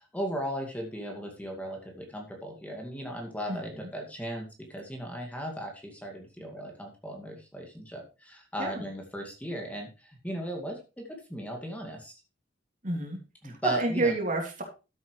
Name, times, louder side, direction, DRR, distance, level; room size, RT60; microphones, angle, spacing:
voice 1, 0.0-4.4 4.7-12.1 13.4-14.1, right 1 dB, 10° left, 1 dB, 2.2 m, -37 dB
voice 2, 3.5-3.9 8.6-8.8 12.8-13.2 13.4-14.6, right 2 dB, 45° right, 2 dB, 3.2 m, -30 dB
13.0 x 8.2 x 3.2 m, 0.30 s
head